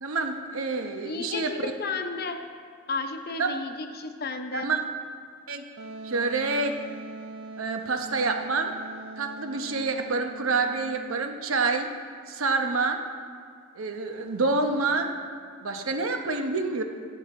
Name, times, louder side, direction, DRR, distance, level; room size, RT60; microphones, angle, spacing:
voice 1, 0.0-1.5 3.4-3.5 4.5-4.8 5.5-5.6 6.0-6.8 7.6-8.7 9.2-11.9 12.3-13.0 13.8-15.1 15.6-16.8, right 3 dB, 90° right, 5 dB, 0.9 m, -27 dB
voice 2, 1.0-2.4 2.9-4.7, left 4 dB, 50° left, 6 dB, 0.7 m, -33 dB
Wind instrument woodwind instrument, 5.8-11.3, right 3 dB, 70° right, 0.5 m, -42 dB
15.0 x 7.9 x 3.7 m, 2.2 s
head